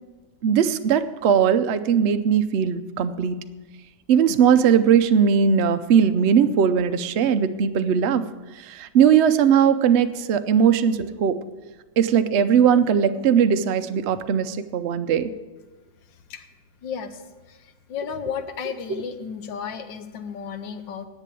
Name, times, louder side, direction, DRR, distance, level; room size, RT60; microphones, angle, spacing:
voice 1, 0.4-3.3 4.1-8.2 8.8-11.4 12.0-15.3, right 7 dB, 75° right, 10 dB, 0.6 m, -19 dB
voice 2, 16.8-17.2 17.5-21.1, left 7 dB, 90° left, 9 dB, 1.6 m, -33 dB
10.5 x 8.3 x 8.3 m, 1.2 s
omnidirectional pair, 1.9 m